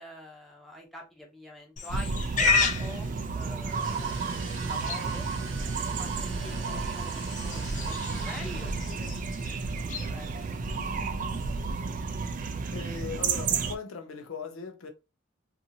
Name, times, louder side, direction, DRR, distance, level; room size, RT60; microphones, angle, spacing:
voice 1, 0.0-3.1 3.3-4.2 4.6-5.3 6.0-10.8 11.0-11.3, equal, ahead, 0.7 m, -45 dB
Livestock farm animals working animals, 1.8-12.6, left 4 dB, 40° left, 0.5 m, -35 dB
sound 1, 1.9-13.8, right 4 dB, 40° right, 0.3 m, -32 dB
sound 2, 3.6-9.2, right 4 dB, 70° right, 0.9 m, -43 dB
voice 2, 12.7-14.9, left 5 dB, 85° left, 0.6 m, -38 dB
2.7 x 2.5 x 2.7 m
head